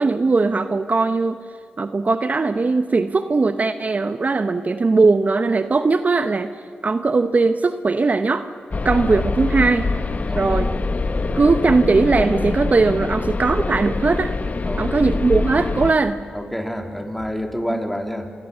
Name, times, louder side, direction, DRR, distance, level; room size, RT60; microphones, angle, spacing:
voice 1, 0.0-1.4 1.8-6.5 6.8-8.5 8.8-9.9 10.4-10.7 11.3-14.3 14.8-16.2, right 3 dB, 45° right, 10 dB, 0.9 m, -19 dB
sound 1, 8.7-15.9, left 3 dB, 45° left, 1.3 m, -24 dB
voice 2, 10.2-10.7 14.6-15.1 16.3-18.3, equal, 5° left, 5 dB, 3.3 m, -29 dB
27.0 x 21.5 x 6.9 m, 2.2 s
supercardioid pair, 45°, 4 cm